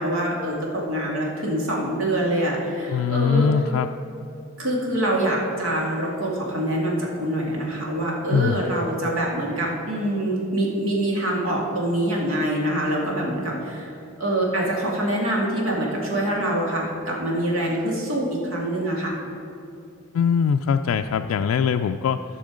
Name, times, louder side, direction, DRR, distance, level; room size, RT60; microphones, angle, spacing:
voice 1, 0.0-3.5 4.6-13.9 14.2-19.1, right 1 dB, 80° right, -2 dB, 2.3 m, -25 dB
voice 2, 2.9-3.9 8.3-8.6 20.1-22.2, left 6 dB, 85° left, 6 dB, 0.3 m, -22 dB
14.5 x 6.1 x 5.0 m, 2.7 s
head